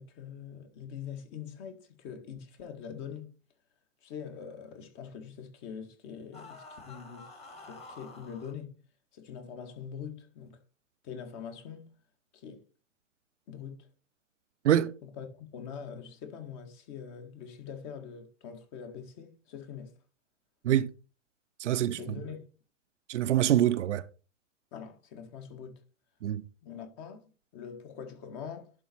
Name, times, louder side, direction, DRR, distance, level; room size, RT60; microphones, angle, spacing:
voice 1, 0.0-3.3 4.0-8.8 9.1-10.6 11.0-12.0 12.3-12.6 13.5-13.9 15.0-19.9 22.0-22.5 24.7-25.8 26.6-27.2 27.5-28.7, left 7 dB, 35° left, 1.8 m, -43 dB
sound 1, 6.3-8.5, left 3 dB, 15° left, 1.6 m, -49 dB
voice 2, 21.6-22.2 23.1-24.0 26.2-26.4, right 11 dB, 65° right, 0.7 m, -25 dB
11.0 x 4.2 x 4.2 m
hypercardioid pair, 115°, 39 cm